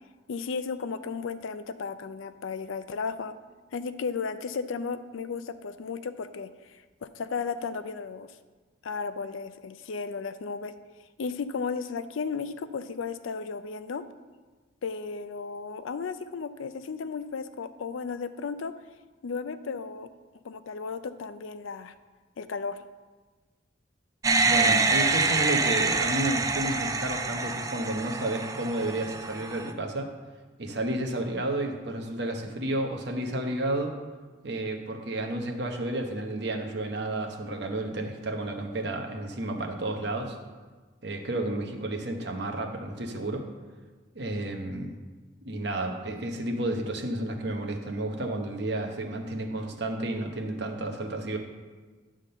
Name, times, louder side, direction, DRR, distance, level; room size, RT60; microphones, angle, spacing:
voice 1, 0.3-3.3 3.7-8.3 8.8-10.7 11.2-14.0 14.8-18.7 19.2-20.1 20.4-21.9 22.4-22.8, left 5 dB, 90° left, 12 dB, 0.5 m, -34 dB
sound 1, 24.2-29.7, right 3 dB, 15° right, 0.3 m, -26 dB
voice 2, 24.4-30.1 30.6-33.9 34.4-40.4 41.0-43.4 44.1-44.9 45.4-51.4, right 1 dB, 60° right, 3 dB, 1.0 m, -31 dB
10.0 x 3.7 x 6.6 m, 1.3 s
head